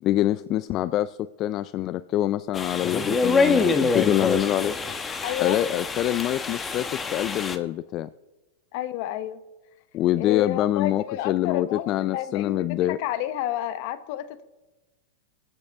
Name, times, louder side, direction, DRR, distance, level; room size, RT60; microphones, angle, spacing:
voice 1, 0.0-4.8 5.4-8.1 9.9-13.0, left 13 dB, 40° left, 15 dB, 0.4 m, -25 dB
sound 1, 2.5-7.6, left 4 dB, 20° left, 1.0 m, -25 dB
voice 2, 5.2-5.6 8.7-9.4 10.2-14.4, left 12 dB, 55° left, 13 dB, 0.9 m, -30 dB
22.0 x 8.1 x 3.5 m, 1.1 s
hypercardioid pair, 125°, 0 cm